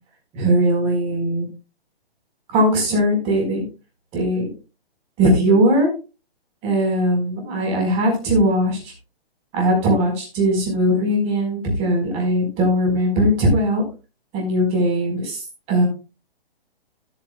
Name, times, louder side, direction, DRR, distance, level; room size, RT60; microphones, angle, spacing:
voice 1, 0.3-1.5 2.5-3.6 4.1-4.5 5.2-5.9 6.6-8.9 9.5-13.8 14.3-15.4 15.7-15.9, equal, 20° right, 1 dB, 4.7 m, -19 dB
15.5 x 9.0 x 2.3 m, 0.31 s
hypercardioid pair, 160°, 30 cm